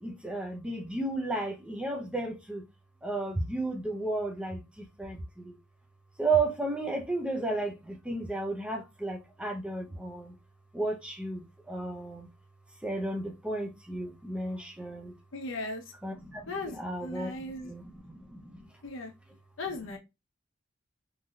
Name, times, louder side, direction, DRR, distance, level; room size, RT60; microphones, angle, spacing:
voice 1, 0.0-2.6 3.0-5.6 6.2-10.3 10.7-12.3 12.8-15.1 16.0-17.4 17.6-18.7, right 2 dB, 5° right, 0.5 m, -33 dB
voice 2, 15.3-15.8 16.5-17.7 18.8-19.1 19.6-20.0, left 2 dB, 75° left, 0.8 m, -37 dB
3.3 x 2.7 x 2.3 m
head